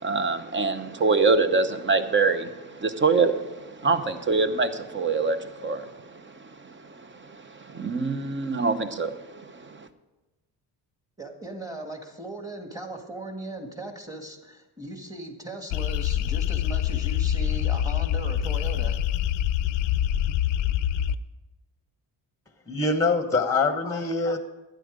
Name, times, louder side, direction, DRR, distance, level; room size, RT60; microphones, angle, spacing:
voice 1, 0.0-6.2 7.2-7.3 7.6-9.9, right 4 dB, 25° right, 10 dB, 0.8 m, -25 dB
voice 2, 11.2-19.0, right 2 dB, 10° right, 4 dB, 1.7 m, -38 dB
sound 1, 15.7-21.2, left 11 dB, 80° left, 0.6 m, -25 dB
voice 3, 22.7-24.4, left 3 dB, 5° left, 8 dB, 1.0 m, -24 dB
12.0 x 9.7 x 5.0 m, 1.1 s
cardioid pair, 110°, 43 cm